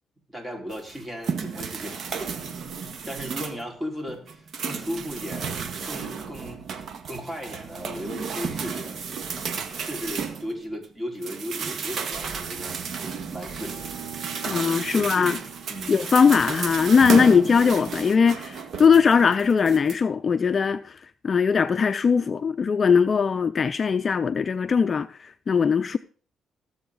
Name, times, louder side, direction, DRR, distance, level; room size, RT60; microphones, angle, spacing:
voice 1, 0.3-2.1 3.1-6.6 7.1-8.9 9.8-12.8 13.3-14.0 14.5-15.3 15.7-16.1, equal, 15° right, 4.8 m, -36 dB
sound 1, 0.7-3.7 4.1-10.8 11.2-19.9, right 5 dB, 60° right, 1.7 m, -33 dB
Bowed string instrument, 13.6-16.9, right 8 dB, 80° right, 3.4 m, -44 dB
voice 2, 14.5-15.4 15.9-21.0 21.2-26.0, left 6 dB, 40° left, 0.5 m, -20 dB
18.0 x 7.9 x 4.0 m
cardioid pair, 90°, 0 cm